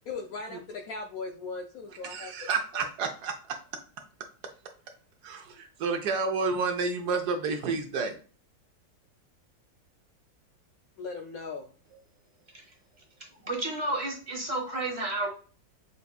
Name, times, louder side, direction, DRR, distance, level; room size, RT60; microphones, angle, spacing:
voice 1, 0.1-2.5 2.7-2.8 11.0-11.7, left 4 dB, 75° left, 2 dB, 0.8 m, -38 dB
voice 2, 2.0-3.6 5.2-8.2, right 4 dB, 70° right, 5 dB, 1.0 m, -30 dB
voice 3, 13.4-15.3, right 2 dB, 30° right, -1 dB, 1.0 m, -31 dB
6.8 x 2.6 x 2.3 m, 0.40 s
omnidirectional pair, 2.0 m